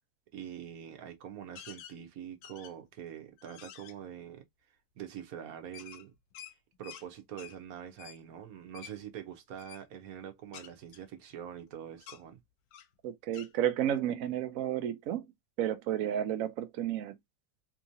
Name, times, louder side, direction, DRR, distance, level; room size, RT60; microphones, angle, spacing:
voice 1, 0.3-4.4 5.0-6.1 6.8-12.4, right 9 dB, 55° right, 1.1 m, -44 dB
sound 1, 1.5-2.0 2.4-2.9 3.4-3.9 5.7-7.1 7.4-7.6 8.0-8.2 8.7-8.9 9.6-9.8 10.5-11.7 12.0-12.2 12.7-12.9 13.3-13.5, left 10 dB, 75° left, 1.3 m, -49 dB
voice 2, 13.0-15.3 15.6-17.2, right 11 dB, 90° right, 0.7 m, -32 dB
3.6 x 3.0 x 2.6 m
omnidirectional pair, 2.2 m